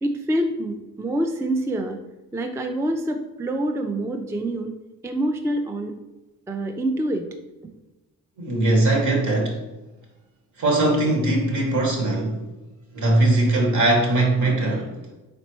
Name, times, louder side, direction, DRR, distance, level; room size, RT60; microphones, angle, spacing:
voice 1, 0.0-2.0 2.3-4.7 5.0-5.9 6.5-7.3, right 1 dB, 10° right, 5 dB, 0.3 m, -26 dB
voice 2, 8.4-9.6 10.6-12.4 12.9-14.9, right 2 dB, 60° right, 0 dB, 1.4 m, -20 dB
4.2 x 4.2 x 3.0 m, 1.1 s
cardioid pair, 90°, 33 cm